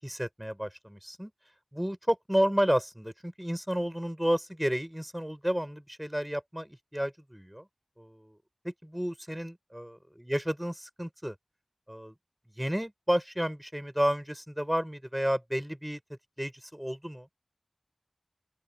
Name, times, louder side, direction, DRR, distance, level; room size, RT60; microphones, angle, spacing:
voice 1, 0.0-1.3 1.7-7.7 8.0-8.4 8.6-11.3 11.9-12.1 12.6-16.0 16.4-17.3, equal, 10° right, 4.9 m, -31 dB
open air
wide cardioid pair, 45°, 0 cm